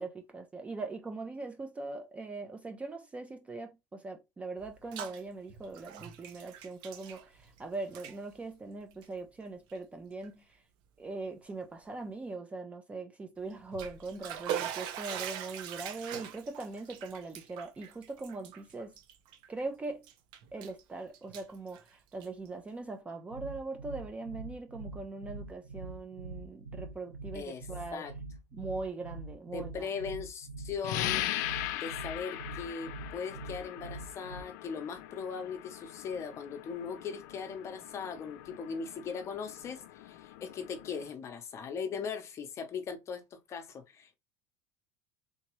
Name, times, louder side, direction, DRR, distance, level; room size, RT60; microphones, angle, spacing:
voice 1, 0.0-10.6 11.0-18.9 19.5-20.0 20.5-28.1 28.5-29.9, right 3 dB, 15° right, 0.4 m, -41 dB
Bathtub (filling or washing), 4.6-5.2 5.5-7.6 7.9-8.2 8.9-9.1 9.7-9.8 10.2-10.3 13.5-19.6 20.0-20.8 21.1-22.5, right 9 dB, 55° right, 0.7 m, -41 dB
sound 1, 23.3-34.4, right 2 dB, 85° right, 0.9 m, -44 dB
voice 2, 27.3-27.7 27.9-28.1 29.5-31.3 31.7-44.2, left 6 dB, 30° left, 0.7 m, -39 dB
sound 2, 30.8-41.1, left 14 dB, 85° left, 0.4 m, -40 dB
3.4 x 2.9 x 3.0 m
supercardioid pair, 145°, 9 cm